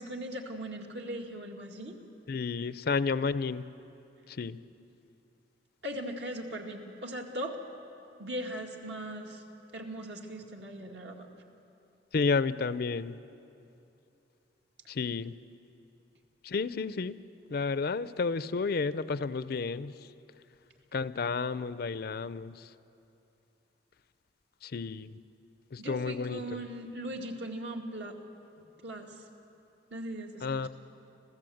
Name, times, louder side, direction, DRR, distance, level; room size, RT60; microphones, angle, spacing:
voice 1, 0.0-2.0 5.8-7.6 8.2-9.4 9.7-11.3 25.8-28.2 28.8-29.2 29.9-30.7, right 1 dB, 70° right, 1 dB, 2.2 m, -39 dB
voice 2, 2.3-3.7 4.3-4.6 12.1-13.1 14.9-15.3 16.4-17.2 17.5-19.9 20.9-22.6 24.6-25.2 25.7-26.6 30.4-30.7, left 4 dB, 60° left, 15 dB, 0.5 m, -31 dB
27.0 x 15.5 x 7.8 m, 2.8 s
head